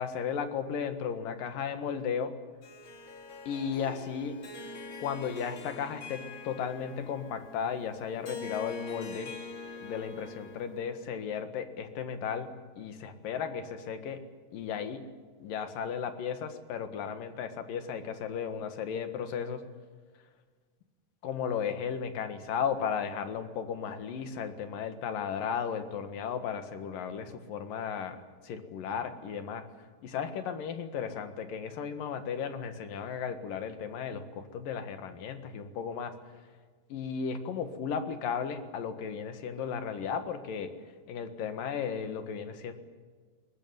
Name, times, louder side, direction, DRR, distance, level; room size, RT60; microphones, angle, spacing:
voice 1, 0.0-2.3 3.5-4.4 5.0-9.3 9.8-14.2 14.5-15.1 15.4-19.6 21.2-28.2 28.4-29.7 30.0-36.2 36.9-40.7 41.1-42.7, left 7 dB, 75° left, 8 dB, 3.4 m, -35 dB
Harp, 2.6-11.0, left 3 dB, 40° left, 2.5 m, -44 dB
22.0 x 20.0 x 9.6 m, 1.5 s
omnidirectional pair, 4.0 m